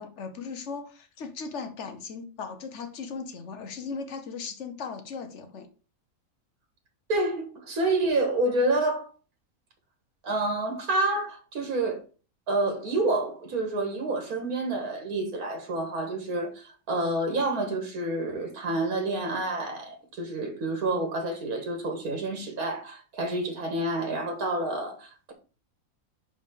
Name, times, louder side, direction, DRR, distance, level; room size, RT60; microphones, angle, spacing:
voice 1, 0.0-5.7, left 5 dB, 55° left, 1.2 m, -37 dB
voice 2, 7.1-9.1 10.2-12.0 12.5-25.3, right 2 dB, 80° right, 1.9 m, -28 dB
5.0 x 4.7 x 5.0 m
omnidirectional pair, 1.5 m